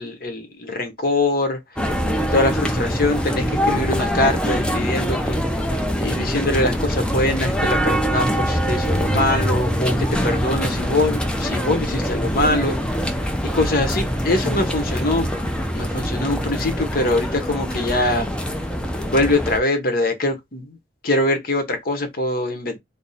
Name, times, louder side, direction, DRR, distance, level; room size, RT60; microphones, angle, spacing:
voice 1, 0.0-1.6 2.3-5.4 6.0-12.8 13.4-15.3 15.7-18.3 19.0-20.8 21.0-22.8, left 2 dB, 55° left, 0.9 m, -23 dB
sound 1, 1.8-19.6, equal, 5° left, 0.5 m, -23 dB
3.5 x 2.0 x 4.0 m
head